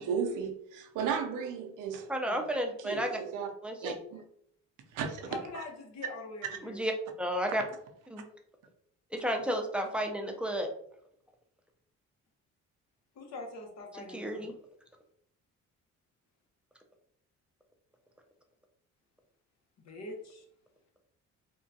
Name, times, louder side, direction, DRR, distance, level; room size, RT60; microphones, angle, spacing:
voice 1, 0.0-2.5 2.8-3.5 3.8-4.2 4.9-5.6, right 6 dB, 85° right, 0.6 m, -35 dB
voice 2, 2.1-3.1 3.6-3.9 6.6-6.9 7.2-7.6 8.1-8.2 9.2-10.7 14.1-14.5, equal, 5° right, 0.5 m, -32 dB
voice 3, 5.3-6.8 13.2-14.6 19.9-20.4, left 2 dB, 60° left, 0.9 m, -43 dB
3.5 x 2.2 x 2.7 m
cardioid pair, 90°, 30 cm